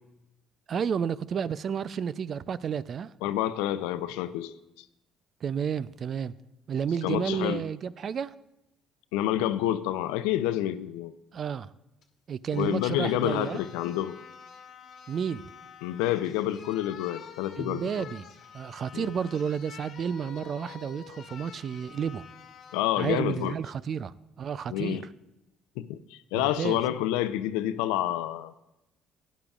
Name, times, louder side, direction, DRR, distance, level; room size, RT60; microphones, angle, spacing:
voice 1, 0.7-3.1 5.4-6.3 6.7-8.3 11.3-11.7 12.3-13.6 15.1-15.4 17.6-18.3 18.5-22.2 23.0-25.0 26.3-26.8, right 7 dB, 50° right, 0.4 m, -31 dB
voice 2, 3.2-4.5 7.0-7.6 9.1-11.1 12.5-14.2 15.8-18.1 18.9-19.1 22.7-23.5 24.7-25.0 25.8-28.5, left 13 dB, 90° left, 0.5 m, -28 dB
sound 1, 12.0-12.1 12.5-22.9 23.3-23.5, left 8 dB, 65° left, 1.3 m, -48 dB
16.5 x 10.0 x 2.4 m
supercardioid pair, 75°, 0 cm